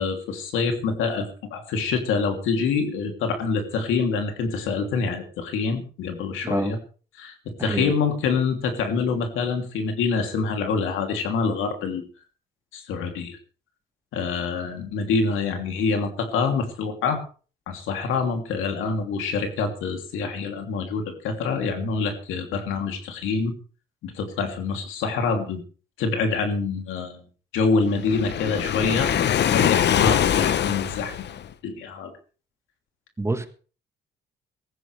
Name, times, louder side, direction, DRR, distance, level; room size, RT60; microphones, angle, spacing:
voice 1, 0.0-6.8 7.2-12.1 12.7-13.4 14.1-17.2 17.7-23.5 24.0-25.6 26.0-27.2 27.5-29.1 29.5-32.1, left 4 dB, 90° left, 5 dB, 3.0 m, -26 dB
voice 2, 6.4-6.7 7.6-7.9 33.2-33.5, right 2 dB, 15° right, 9 dB, 1.6 m, -26 dB
Waves surf, 28.0-31.5, left 10 dB, 60° left, 0.9 m, -23 dB
18.0 x 14.5 x 3.4 m, 0.38 s
cardioid pair, 90°, 20 cm